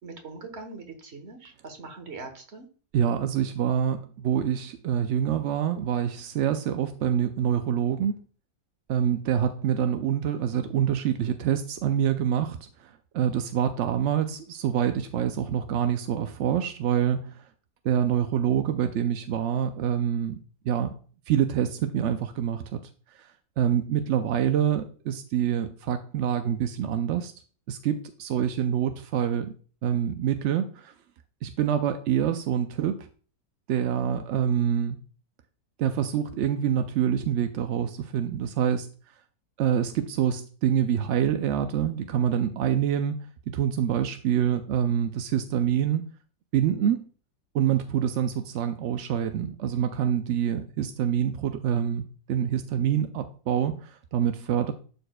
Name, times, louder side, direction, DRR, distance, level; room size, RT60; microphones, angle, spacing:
voice 1, 0.0-2.7, right 3 dB, 45° right, 5 dB, 1.3 m, -42 dB
voice 2, 2.9-8.2 8.9-17.5 17.8-20.4 20.6-20.9 21.3-22.8 23.1-23.3 23.6-27.3 27.7-29.5 29.8-30.9 31.4-33.1 33.7-35.0 35.8-38.9 39.6-43.2 43.5-46.0 46.5-47.1 47.5-54.7, right 9 dB, 70° right, 8 dB, 0.7 m, -26 dB
11.5 x 4.4 x 2.2 m, 0.40 s
omnidirectional pair, 1.6 m